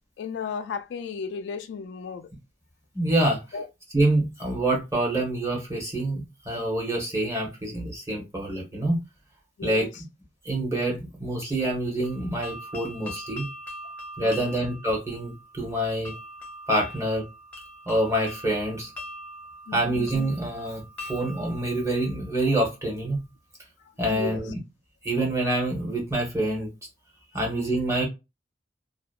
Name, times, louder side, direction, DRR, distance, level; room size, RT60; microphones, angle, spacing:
voice 1, 0.2-2.3 3.5-3.7 9.6-9.9 14.2-14.5 15.8-15.9 19.7-19.9 24.1-24.4, left 5 dB, 75° left, 0.3 m, -34 dB
voice 2, 2.9-3.6 3.9-9.0 9.6-10.0 10.4-13.5 14.2-16.1 16.7-17.2 17.9-18.9 19.7-23.3 24.0-24.6 25.0-26.7 27.3-28.0, right 1 dB, 15° right, 0.9 m, -26 dB
sound 1, 12.0-22.8, left 1 dB, 10° left, 0.7 m, -42 dB
2.8 x 2.1 x 2.3 m
head